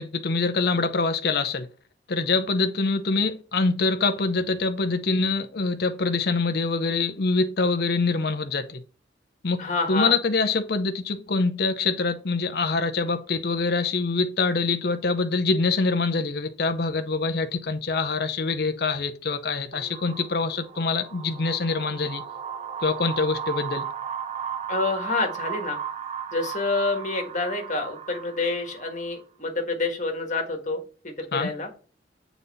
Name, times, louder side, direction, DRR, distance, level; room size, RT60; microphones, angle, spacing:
voice 1, 0.0-1.7 2.1-8.8 9.4-9.6 9.9-22.2 22.8-23.8 31.3-31.5, left 3 dB, 55° left, 0.7 m, -25 dB
voice 2, 9.6-10.1 24.7-25.8 26.3-31.7, left 3 dB, 40° left, 1.5 m, -28 dB
sound 1, 19.7-29.2, right 8 dB, 35° right, 0.8 m, -35 dB
7.3 x 4.1 x 4.1 m
head